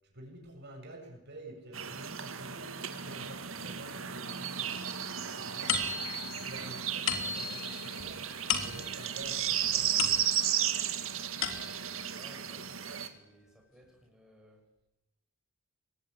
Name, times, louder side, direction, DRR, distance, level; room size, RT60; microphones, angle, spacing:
voice 1, 0.0-4.8 5.2-8.2 8.6-10.3, right 1 dB, 55° right, 2 dB, 7.9 m, -49 dB
sound 1, 1.7-13.1, right 9 dB, 70° right, 2.2 m, -34 dB
sound 2, 5.7-10.7 11.1-12.0, left 7 dB, 70° left, 3.3 m, -36 dB
voice 2, 12.1-14.6, right 1 dB, 5° right, -2 dB, 6.6 m, -58 dB
24.5 x 21.0 x 10.0 m, 0.92 s
head